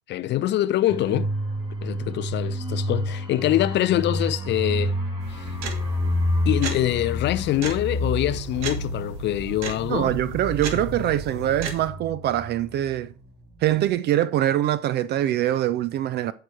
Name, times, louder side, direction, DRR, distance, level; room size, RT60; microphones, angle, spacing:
voice 1, 0.1-1.3 1.8-5.0 5.3-5.5 6.5-10.1, left 13 dB, 30° left, 0.5 m, -24 dB
sound 1, 0.9-13.2 13.5-13.7, left 1 dB, 15° right, 3.5 m, -29 dB
sound 2, 5.2-11.9, right 4 dB, 60° right, 1.7 m, -35 dB
voice 2, 9.9-13.1 13.6-16.3, right 12 dB, 30° right, 0.4 m, -23 dB
11.5 x 4.9 x 4.5 m
figure-of-eight pair, 70°, 38 cm